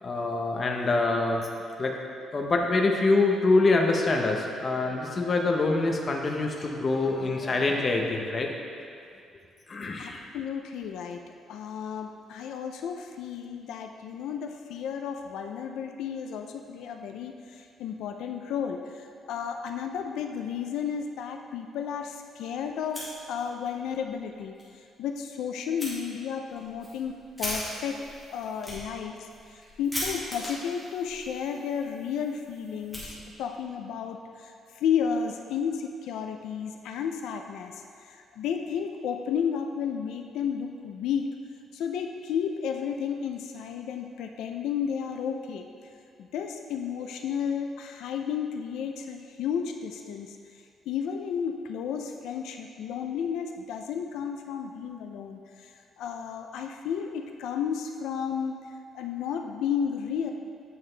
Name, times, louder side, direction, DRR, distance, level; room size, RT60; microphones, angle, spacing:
voice 1, 0.0-1.5 1.8-2.0 2.3-8.5 9.7-10.2, left 3 dB, 25° left, 1 dB, 0.7 m, -25 dB
voice 2, 10.0-11.2 11.5-24.5 25.0-28.0 28.3-41.3 41.7-45.7 46.2-50.4 50.9-58.6 58.9-60.3, left 7 dB, 80° left, 4 dB, 0.4 m, -32 dB
Fire, 22.8-23.7 24.0-24.1 24.6-24.7 25.8-25.9 26.5-33.6, left 1 dB, 5° left, 1.9 m, -39 dB
8.6 x 6.4 x 3.3 m, 2.3 s
cardioid pair, 165°, 0 cm